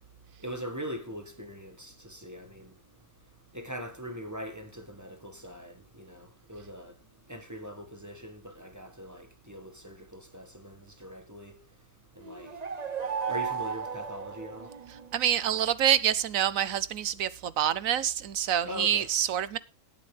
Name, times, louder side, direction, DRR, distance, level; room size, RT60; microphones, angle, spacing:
voice 1, 0.4-2.7 3.5-6.9 7.3-11.6 12.2-12.5 13.3-14.7 18.6-19.1, equal, 10° right, 1.6 m, -41 dB
sound 1, 12.2-15.1, right 6 dB, 35° right, 0.9 m, -35 dB
voice 2, 15.1-19.6, right 10 dB, 75° right, 1.1 m, -26 dB
18.5 x 7.6 x 3.3 m
omnidirectional pair, 1.5 m